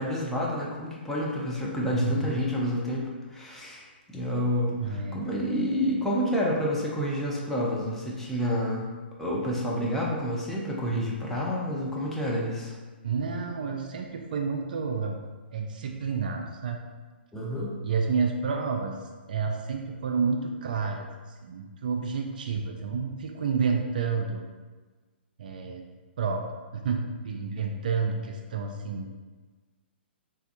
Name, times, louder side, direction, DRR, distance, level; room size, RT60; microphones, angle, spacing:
voice 1, 0.0-8.9 9.2-12.7 17.3-17.8, equal, 5° left, -5 dB, 0.5 m, -29 dB
voice 2, 1.9-2.3 4.8-5.2 13.0-15.2 15.5-16.8 17.8-24.4 25.4-25.8 26.2-26.4 26.7-29.1, right 5 dB, 50° right, 3 dB, 0.4 m, -30 dB
3.4 x 3.4 x 2.5 m, 1.3 s
figure-of-eight pair, 120°, 6 cm